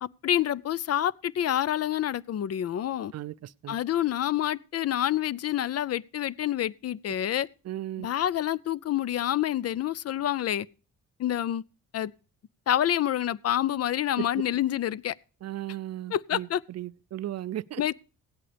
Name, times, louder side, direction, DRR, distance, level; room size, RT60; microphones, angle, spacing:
voice 1, 0.0-3.1 3.7-7.5 8.0-10.7 11.2-11.6 11.9-12.1 12.7-15.2 16.1-16.6 17.8-17.9, left 11 dB, 50° left, 0.5 m, -27 dB
voice 2, 3.1-3.8 7.7-8.1 14.2-14.3 15.4-17.8, right 13 dB, 55° right, 0.5 m, -36 dB
16.0 x 11.0 x 3.3 m
cardioid pair, 80°, 32 cm